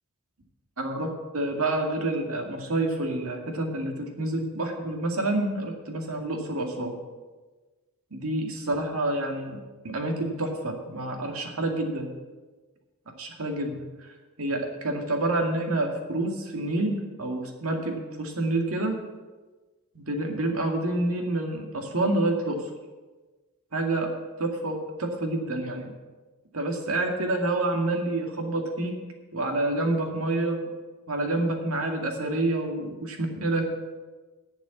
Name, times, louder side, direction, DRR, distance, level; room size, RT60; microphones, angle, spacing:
voice 1, 0.8-7.0 8.1-12.1 13.2-19.0 19.9-22.7 23.7-24.1 24.4-25.9 26.5-28.9 29.3-30.6 31.1-33.7, right 2 dB, 70° right, 3 dB, 2.2 m, -28 dB
11.0 x 7.1 x 9.5 m, 1.3 s
head